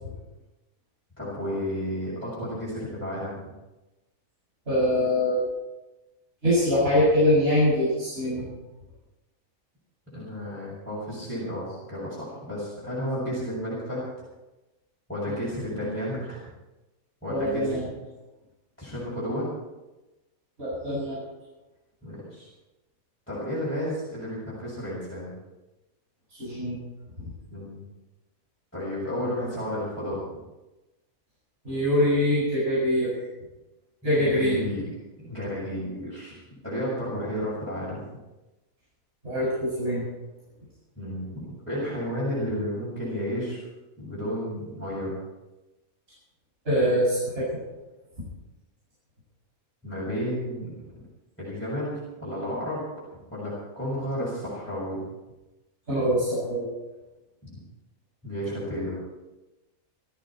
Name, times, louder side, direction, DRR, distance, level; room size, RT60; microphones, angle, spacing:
voice 1, 1.2-3.4 10.1-14.1 15.1-16.4 17.2-17.7 18.8-19.5 22.0-22.5 23.3-25.4 27.5-27.8 28.7-30.2 34.1-34.8 35.2-38.0 41.0-43.6 44.0-45.1 49.8-50.7 51.4-52.8 53.3-55.0 57.4-57.6 58.2-58.9, equal, 10° left, -10 dB, 6.6 m, -32 dB
voice 2, 4.7-5.4 6.4-8.5 17.3-17.8 20.6-21.2 26.4-26.8 31.6-33.1 34.0-34.6 39.2-40.1 46.7-47.6 55.9-56.7, equal, 45° right, -9 dB, 7.3 m, -23 dB
20.0 x 14.0 x 4.4 m, 1.0 s
omnidirectional pair, 1.5 m